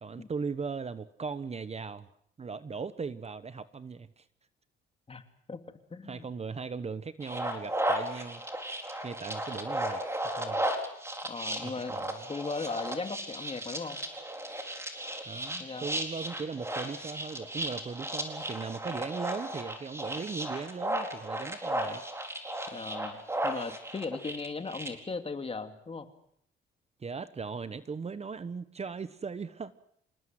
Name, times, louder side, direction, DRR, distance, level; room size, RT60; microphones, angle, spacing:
voice 1, 0.0-2.1 2.4-4.2 6.0-8.4 9.0-10.0 10.4-10.6 11.6-12.3 15.3-22.0 27.0-29.7, right 5 dB, 30° right, 14 dB, 1.1 m, -38 dB
voice 2, 5.9-6.2 11.2-14.0 15.6-15.9 22.7-26.1, left 4 dB, 30° left, 7 dB, 2.6 m, -37 dB
sound 1, 7.2-24.9, right 1 dB, 15° right, 4.4 m, -35 dB
27.0 x 19.5 x 7.7 m, 0.69 s
cardioid pair, 90°, 20 cm